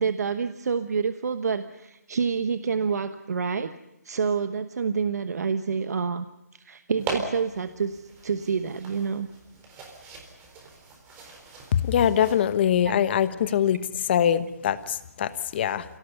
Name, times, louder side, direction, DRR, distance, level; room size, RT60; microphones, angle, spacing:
voice 1, 0.0-3.7 4.0-6.2 6.5-9.3 12.8-12.9 13.5-13.6, right 5 dB, 65° right, 10 dB, 1.1 m, -28 dB
sound 1, 7.0-12.5, right 3 dB, 20° right, 4.1 m, -39 dB
voice 2, 11.8-13.8 14.1-15.8, left 9 dB, 40° left, 13 dB, 1.2 m, -23 dB
27.5 x 17.5 x 6.9 m, 0.90 s
hypercardioid pair, 155°, 9 cm